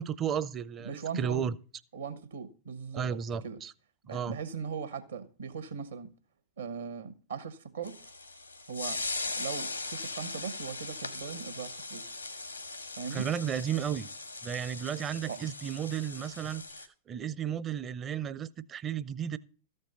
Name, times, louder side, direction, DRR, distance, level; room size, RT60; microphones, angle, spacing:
voice 1, 0.0-1.6 2.9-3.7 4.1-4.4 13.1-14.1 14.4-16.6 17.1-19.4, right 8 dB, 25° right, 0.6 m, -33 dB
voice 2, 0.8-1.5 1.9-3.2 3.4-3.6 4.1-6.1 6.6-8.0 8.7-12.0 13.0-13.3 15.3-15.4, right 6 dB, 75° right, 1.5 m, -39 dB
sound 1, 7.8-16.9, left 3 dB, 90° left, 1.2 m, -39 dB
13.5 x 5.4 x 6.8 m
figure-of-eight pair, 95°, 0 cm